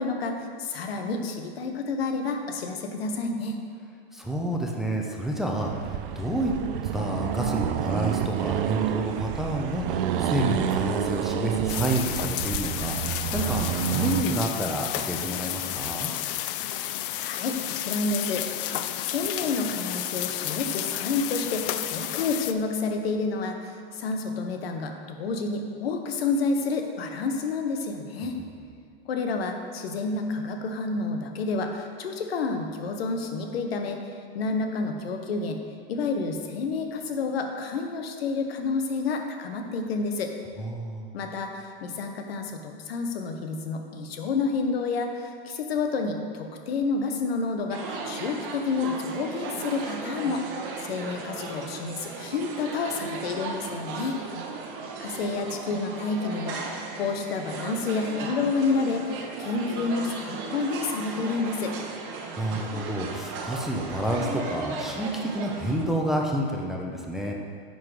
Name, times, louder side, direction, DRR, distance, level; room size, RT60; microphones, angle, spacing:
voice 1, 0.0-3.6 17.1-18.5 19.0-28.4 29.1-34.0 34.3-35.6 35.9-40.3 41.1-54.2 55.0-61.8, left 4 dB, 85° left, 4 dB, 1.0 m, -29 dB
voice 2, 4.1-6.5 6.9-16.1 40.6-41.1 62.4-67.3, right 1 dB, ahead, -1 dB, 0.7 m, -29 dB
Accelerating revving vroom, 5.6-14.3, right 10 dB, 65° right, 0.5 m, -29 dB
sound 1, 11.7-22.5, left 13 dB, 65° left, 0.5 m, -32 dB
sound 2, 47.7-65.8, right 4 dB, 45° right, 1.1 m, -36 dB
9.6 x 4.0 x 4.9 m, 2.3 s
supercardioid pair, 125°, 29 cm